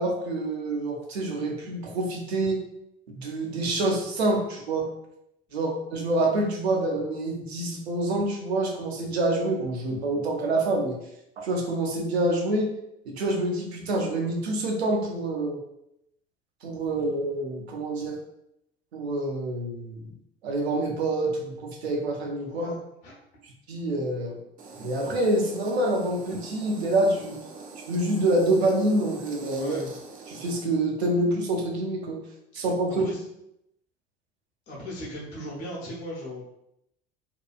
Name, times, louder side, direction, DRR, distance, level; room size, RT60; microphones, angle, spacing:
voice 1, 0.0-2.6 3.1-4.9 5.5-11.0 11.4-12.7 13.1-15.6 16.6-18.2 18.9-20.1 20.4-22.7 23.7-24.4 24.8-27.4 27.9-29.8 30.3-32.2 32.5-33.1, right 2 dB, 75° right, 0 dB, 0.6 m, -27 dB
voice 2, 22.5-23.1 29.6-29.9 32.5-32.7 33.0-33.2 34.7-36.4, left 1 dB, 50° left, -4 dB, 1.0 m, -38 dB
sound 1, 24.6-30.6, right 4 dB, 25° right, 0.4 m, -44 dB
2.7 x 2.3 x 2.4 m, 0.80 s
figure-of-eight pair, 65°, 32 cm